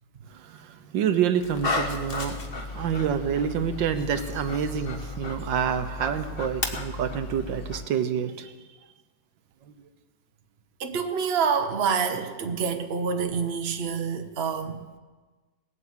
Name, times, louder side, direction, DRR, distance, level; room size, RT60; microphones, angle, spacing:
voice 1, 0.3-2.4 2.7-8.5, right 8 dB, 80° right, 10 dB, 1.6 m, -27 dB
Dog, 1.4-7.8, left 2 dB, 35° left, 1.2 m, -34 dB
voice 2, 10.8-14.8, right 6 dB, 40° right, 6 dB, 1.1 m, -27 dB
19.0 x 8.4 x 8.0 m, 1.3 s
omnidirectional pair, 2.0 m